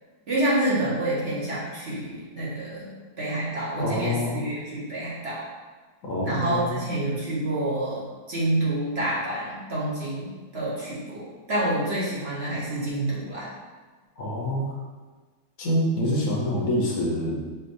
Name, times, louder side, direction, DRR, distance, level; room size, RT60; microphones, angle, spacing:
voice 1, 0.3-2.9 3.2-5.4 6.2-13.5, right 1 dB, 40° right, -7 dB, 1.1 m, -28 dB
voice 2, 3.8-4.4 6.0-6.8 14.2-14.6 15.6-17.4, left 1 dB, 60° left, -3 dB, 1.3 m, -26 dB
5.3 x 3.3 x 2.6 m, 1.4 s
omnidirectional pair, 1.8 m